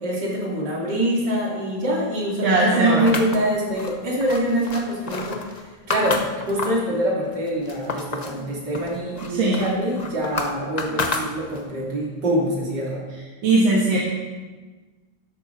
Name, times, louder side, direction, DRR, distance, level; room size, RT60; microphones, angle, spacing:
voice 1, 0.0-5.5 5.9-6.2 6.5-13.0, right 1 dB, 60° right, -4 dB, 3.6 m, -24 dB
voice 2, 2.4-3.1 9.3-9.6 13.4-14.0, right 2 dB, 75° right, -3 dB, 2.2 m, -19 dB
sound 1, 3.1-6.9 7.3-8.4 8.7-11.8, left 3 dB, 85° left, 0.3 m, -30 dB
12.5 x 11.0 x 4.7 m, 1.3 s
omnidirectional pair, 2.1 m